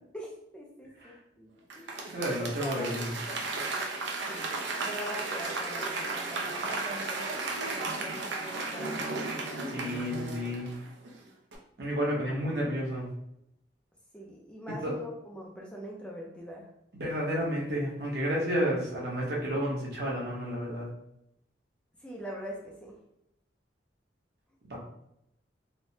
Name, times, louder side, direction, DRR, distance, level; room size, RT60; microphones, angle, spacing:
voice 1, 0.1-1.9 2.3-3.4 4.3-9.1 14.1-16.7 22.0-22.9, equal, 5° left, -3 dB, 0.4 m, -43 dB
Applause / Crowd, 1.7-11.1 11.5-11.6, right 3 dB, 75° right, 0.5 m, -34 dB
voice 2, 2.1-3.1 9.7-10.7 11.8-13.1 14.8-14.9 16.9-20.9 24.7-24.8, equal, 60° right, -3 dB, 0.9 m, -31 dB
3.2 x 2.1 x 2.7 m, 0.80 s
head